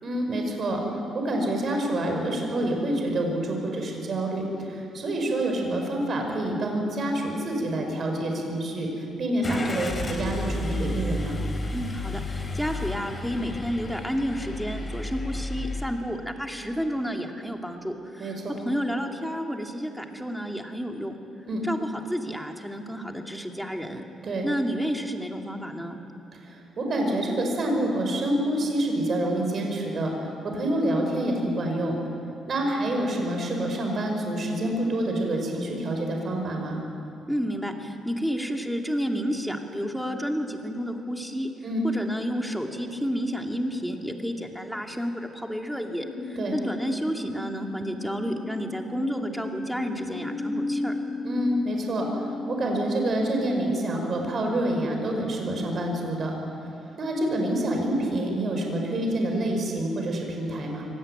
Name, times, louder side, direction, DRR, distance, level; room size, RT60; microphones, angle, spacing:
voice 1, 0.0-0.8 1.1-11.4 18.2-18.6 21.5-21.6 24.2-24.5 26.3-32.0 32.4-36.8 41.6-41.8 46.4-46.6 51.2-52.1 52.5-56.3 57.0-60.9, right 1 dB, 50° right, 2 dB, 5.5 m, -27 dB
Car / Engine starting, 9.4-15.8, left 2 dB, 30° left, 4.1 m, -32 dB
voice 2, 11.7-18.4 18.6-21.2 21.6-24.0 24.4-26.0 37.3-41.5 41.8-50.9, equal, ahead, 3 dB, 2.5 m, -31 dB
sound 1, 46.0-53.6, left 1 dB, 50° left, 2.7 m, -35 dB
24.0 x 18.0 x 9.0 m, 2.7 s
cardioid pair, 90°, 0 cm